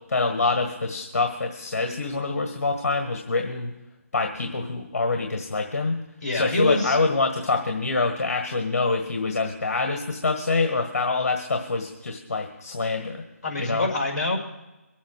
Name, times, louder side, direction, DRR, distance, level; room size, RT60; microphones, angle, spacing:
voice 1, 0.1-3.7 4.1-5.9 6.3-13.2 13.6-13.9, left 3 dB, 55° left, 4 dB, 1.7 m, -25 dB
voice 2, 6.2-7.0 13.4-14.4, left 2 dB, 35° left, 0 dB, 5.2 m, -25 dB
23.0 x 8.4 x 4.8 m, 1.0 s
hypercardioid pair, 170°, 9 cm